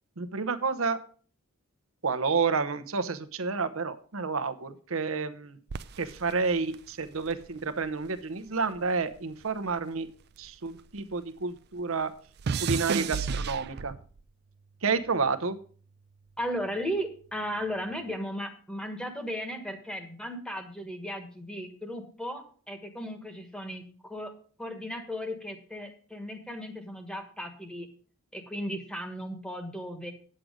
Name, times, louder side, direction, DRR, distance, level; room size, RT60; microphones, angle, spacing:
voice 1, 0.2-1.0 2.0-5.6 6.0-10.1 10.4-12.1 12.6-13.9 14.8-15.6, right 4 dB, 75° right, 11 dB, 0.9 m, -30 dB
sound 1, 5.7-8.2 8.5-11.1 11.4-14.2 14.9-15.3, right 5 dB, 50° right, 0.4 m, -34 dB
voice 2, 16.4-24.3 24.6-27.9 28.3-30.1, equal, 5° left, 5 dB, 1.3 m, -36 dB
9.4 x 7.7 x 5.0 m, 0.43 s
head